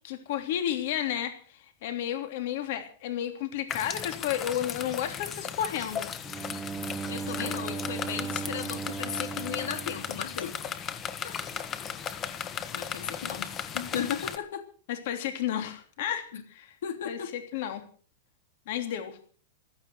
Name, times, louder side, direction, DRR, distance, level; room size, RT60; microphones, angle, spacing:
voice 1, 0.0-6.1 7.3-7.6 14.9-16.7 17.0-17.8 18.7-19.2, left 10 dB, 60° left, 6 dB, 3.3 m, -32 dB
sound 1, 3.7-14.4, left 8 dB, 25° left, 1.6 m, -36 dB
Bowed string instrument, 6.2-11.1, right 6 dB, 10° right, 1.1 m, -38 dB
voice 2, 7.1-10.6 11.2-11.4 12.7-14.6 16.3-16.4 16.8-17.3, left 8 dB, 85° left, 6 dB, 3.1 m, -36 dB
15.5 x 13.5 x 6.4 m, 0.44 s
supercardioid pair, 145°, 0 cm